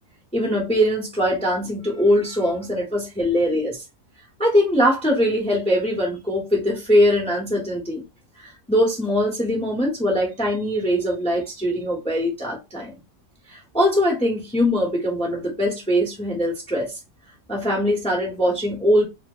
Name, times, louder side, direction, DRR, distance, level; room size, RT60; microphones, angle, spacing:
voice 1, 0.3-3.8 4.4-8.0 8.7-13.0 13.5-16.9 17.5-19.0, equal, 5° left, 0.8 m, -21 dB
2.9 x 2.1 x 3.6 m
omnidirectional pair, 1.8 m